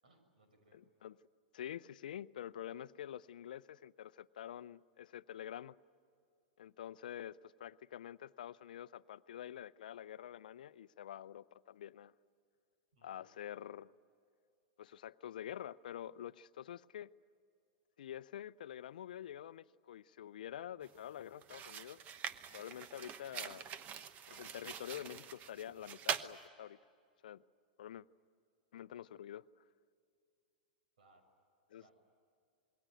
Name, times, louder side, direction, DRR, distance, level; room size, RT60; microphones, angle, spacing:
voice 1, 0.0-0.8 12.9-13.2 31.0-31.2 31.8-31.9, right 2 dB, 70° right, 6 dB, 6.8 m, -68 dB
voice 2, 0.7-1.2 1.5-5.8 6.6-12.1 13.0-13.9 14.8-17.1 18.0-22.0 22.5-23.7 24.3-26.8 27.2-27.4 27.8-28.1 28.7-29.5 31.7-31.8, left 10 dB, 70° left, 17 dB, 0.6 m, -47 dB
sound 1, 20.8-21.0 21.4-26.3, right 8 dB, 35° right, 1.1 m, -44 dB
27.5 x 21.5 x 9.2 m, 2.4 s
hypercardioid pair, 100°, 5 cm